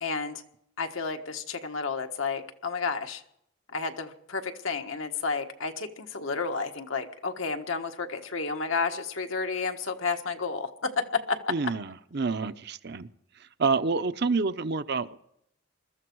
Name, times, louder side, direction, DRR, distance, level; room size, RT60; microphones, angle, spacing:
voice 1, 0.0-0.4 0.8-3.2 3.7-11.5, left 4 dB, 85° left, 5 dB, 1.5 m, -31 dB
voice 2, 11.5-13.1 13.4-15.2, right 4 dB, 55° right, 11 dB, 0.7 m, -28 dB
21.5 x 13.5 x 4.7 m, 0.73 s
head